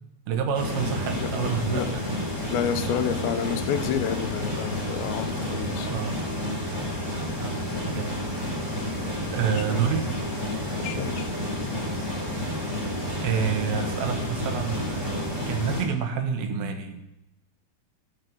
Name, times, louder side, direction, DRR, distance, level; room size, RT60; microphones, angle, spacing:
voice 1, 0.3-2.0 5.8-6.2 7.4-8.4 9.3-10.0 12.6-12.9 13.2-17.0, right 7 dB, 80° right, 6 dB, 2.7 m, -28 dB
sound 1, 0.5-15.8, left 1 dB, 5° right, 2.5 m, -30 dB
voice 2, 1.2-1.9 2.5-5.9 9.5-9.8 10.8-11.3, left 9 dB, 85° left, 7 dB, 2.5 m, -30 dB
12.5 x 4.8 x 5.2 m, 0.93 s
omnidirectional pair, 4.3 m